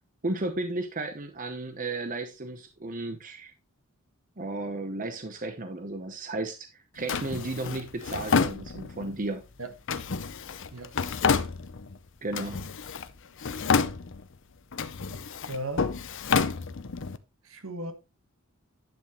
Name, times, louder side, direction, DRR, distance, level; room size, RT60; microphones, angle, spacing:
voice 1, 0.2-3.5 4.4-9.4 12.2-12.6, right 2 dB, 35° right, 0.9 m, -34 dB
Drawer open or close, 7.1-9.2 9.9-12.0 12.3-13.1 13.4-14.3 14.7-17.2, left 5 dB, 60° left, 0.7 m, -29 dB
voice 2, 15.5-15.9 17.4-17.9, right 1 dB, 65° right, 1.6 m, -36 dB
10.5 x 7.3 x 3.1 m
head